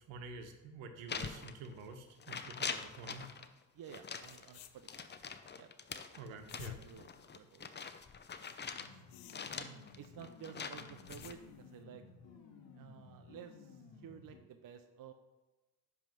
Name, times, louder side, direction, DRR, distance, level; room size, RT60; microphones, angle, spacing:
voice 1, 0.1-3.3 6.2-6.8, right 4 dB, 65° right, 6 dB, 1.2 m, -48 dB
sound 1, 1.1-1.9 2.2-3.5 3.9-8.9 9.3-11.3, left 6 dB, 20° left, 0.6 m, -44 dB
voice 2, 3.7-5.1 5.5-7.7 8.8-9.0 9.5-12.0 12.7-15.1, right 8 dB, 40° right, 7 dB, 0.7 m, -53 dB
sound 2, 4.2-5.3 6.2-7.9 8.4-10.0 10.7-11.8, left 12 dB, 75° left, 0.7 m, -54 dB
sound 3, 8.8-14.4, left 5 dB, 60° left, 1.3 m, -56 dB
10.5 x 3.6 x 6.0 m, 1.1 s
hypercardioid pair, 55°, 49 cm